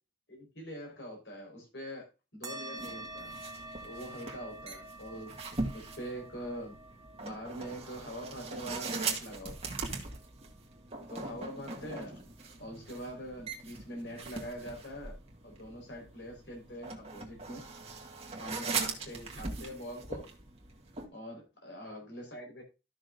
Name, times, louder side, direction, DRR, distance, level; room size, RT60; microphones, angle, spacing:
voice 1, 0.3-2.1 2.3-3.3 3.8-5.3 5.7-6.8 7.2-9.7 11.1-12.2 12.6-15.1 15.4-17.6 18.4-20.3 21.1-22.6, equal, 65° left, 2 dB, 4.4 m, -43 dB
sound 1, 2.4-11.3, right 2 dB, 20° right, 1.5 m, -49 dB
sound 2, 2.8-21.1, right 4 dB, 35° right, 1.8 m, -41 dB
13.5 x 6.3 x 2.6 m, 0.28 s
head